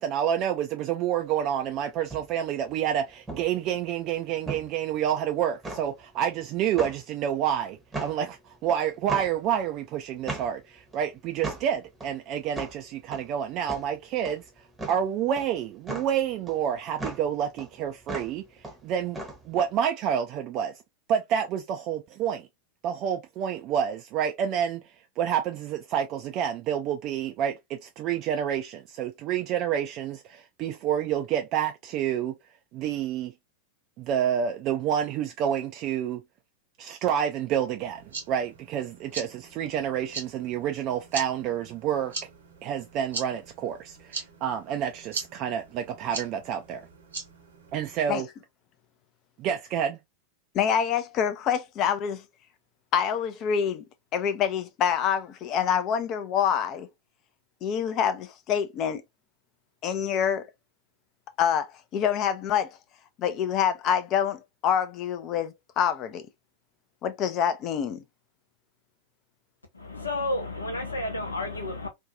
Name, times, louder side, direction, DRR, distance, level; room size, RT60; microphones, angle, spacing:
voice 1, 0.0-14.4 14.9-18.4 18.8-19.2 19.5-20.7 21.1-22.5 22.8-24.8 25.2-32.3 32.7-33.3 34.0-36.2 36.8-38.0 38.3-42.1 42.6-46.9 47.7-48.3 49.4-50.0, right 9 dB, 40° right, 0.3 m, -28 dB
sound 1, 1.2-19.7, right 2 dB, 10° right, 0.8 m, -38 dB
sound 2, 37.8-48.0, right 5 dB, 70° right, 0.8 m, -41 dB
voice 2, 50.5-52.2 52.9-53.8 54.1-56.9 57.6-59.0 59.8-60.4 61.4-62.8 63.2-66.2 67.0-68.0, left 8 dB, 35° left, 0.5 m, -26 dB
voice 3, 69.7-71.9, left 2 dB, 80° left, 0.8 m, -31 dB
2.6 x 2.3 x 2.3 m
figure-of-eight pair, 90°, 0 cm